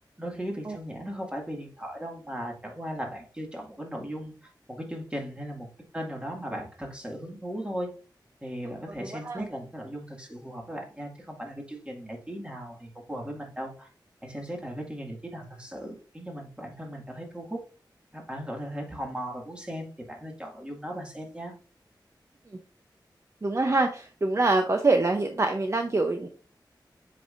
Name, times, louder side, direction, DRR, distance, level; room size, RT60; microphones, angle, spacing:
voice 1, 0.2-5.7 5.9-7.9 8.4-13.9 14.2-17.6 18.1-21.5, equal, 15° right, 0 dB, 2.0 m, -37 dB
voice 2, 9.0-9.5 23.4-26.3, right 2 dB, 35° right, 5 dB, 0.7 m, -25 dB
7.5 x 5.4 x 2.5 m, 0.38 s
wide cardioid pair, 75°, 8 cm